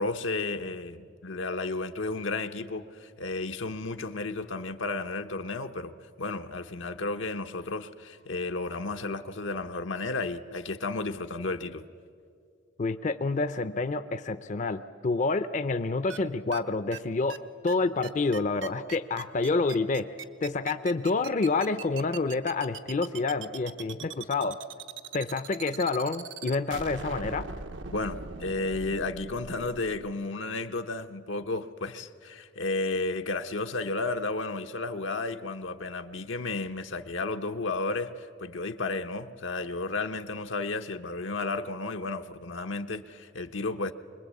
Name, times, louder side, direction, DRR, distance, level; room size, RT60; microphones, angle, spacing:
voice 1, 0.0-11.8 27.9-43.9, left 3 dB, 85° left, 1.0 m, -33 dB
voice 2, 12.8-17.4 17.6-20.1 20.4-24.6 25.1-27.5, left 3 dB, 40° left, 0.5 m, -28 dB
sound 1, 16.1-16.2 16.5-16.6 16.9-17.0 17.3-17.4 17.7-17.8 18.0-30.1, right 5 dB, 80° right, 0.9 m, -41 dB
24.5 x 21.0 x 8.4 m
head